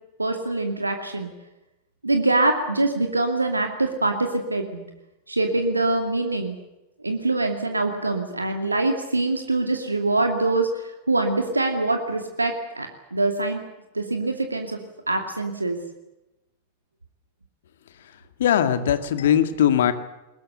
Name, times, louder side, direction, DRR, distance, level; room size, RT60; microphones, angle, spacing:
voice 1, 0.2-1.3 2.0-4.8 5.3-6.6 7.0-13.6 13.9-14.8 15.1-15.8, right 2 dB, 80° right, 5 dB, 2.4 m, -24 dB
voice 2, 18.4-19.9, left 9 dB, 60° left, 10 dB, 2.1 m, -20 dB
22.5 x 20.5 x 8.0 m, 0.95 s
figure-of-eight pair, 90°, 0 cm